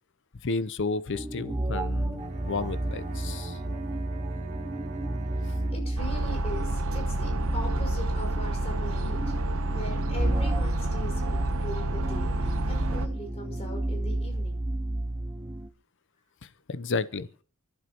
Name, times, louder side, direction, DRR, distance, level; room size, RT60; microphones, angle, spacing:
voice 1, 0.4-3.6 16.4-17.3, left 3 dB, 55° left, 15 dB, 0.7 m, -32 dB
sound 1, 1.1-15.7, right 1 dB, 15° right, 0.7 m, -32 dB
Bowed string instrument, 2.1-6.2, right 3 dB, 30° right, 2.0 m, -39 dB
voice 2, 5.4-9.3 9.7-14.6, equal, 30° left, 2 dB, 5.4 m, -40 dB
sound 2, 6.0-13.1, right 1 dB, 65° right, 1.0 m, -30 dB
29.5 x 11.5 x 3.0 m, 0.41 s
head